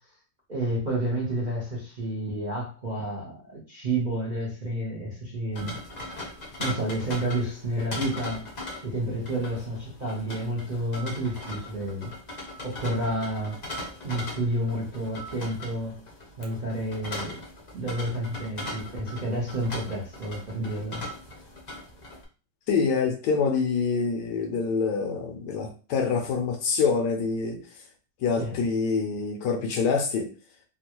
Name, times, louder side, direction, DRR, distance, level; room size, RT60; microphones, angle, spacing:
voice 1, 0.5-5.8 6.0-6.2 6.6-8.5 8.8-12.1 12.6-13.6 14.0-16.0 16.4-17.4 17.7-21.0 28.4-28.6, right 1 dB, 45° right, -5 dB, 0.6 m, -30 dB
sound 1, 5.5-22.2, left 1 dB, 50° left, 0.4 m, -39 dB
voice 2, 22.7-27.6 28.2-30.3, left 5 dB, 75° left, 3 dB, 1.1 m, -26 dB
3.5 x 2.3 x 2.9 m, 0.36 s
omnidirectional pair, 2.0 m